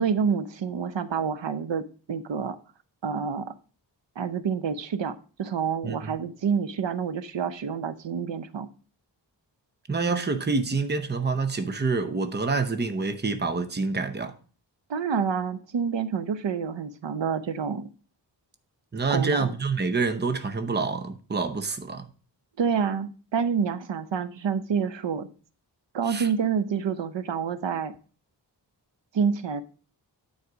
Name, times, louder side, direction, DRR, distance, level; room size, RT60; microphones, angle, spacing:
voice 1, 0.0-1.8 2.1-2.6 3.0-3.5 4.2-8.7 14.9-17.9 19.1-19.5 22.6-25.3 25.9-27.9 29.1-29.6, right 6 dB, 75° right, 0.8 m, -28 dB
voice 2, 5.8-6.2 9.9-14.4 18.9-22.1 26.0-26.3, right 4 dB, 25° right, 0.8 m, -27 dB
9.5 x 4.2 x 5.0 m
wide cardioid pair, 105°, 44 cm